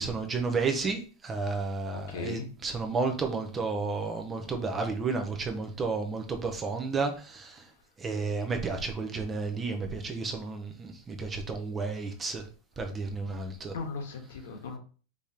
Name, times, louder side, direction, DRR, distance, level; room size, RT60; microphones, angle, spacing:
voice 1, 0.0-7.6 8.0-12.4 12.8-13.7, right 4 dB, 15° right, 0.7 m, -32 dB
voice 2, 1.9-2.5 13.7-14.8, left 4 dB, 90° left, 1.3 m, -37 dB
5.0 x 3.4 x 2.9 m
supercardioid pair, 165°, 0 cm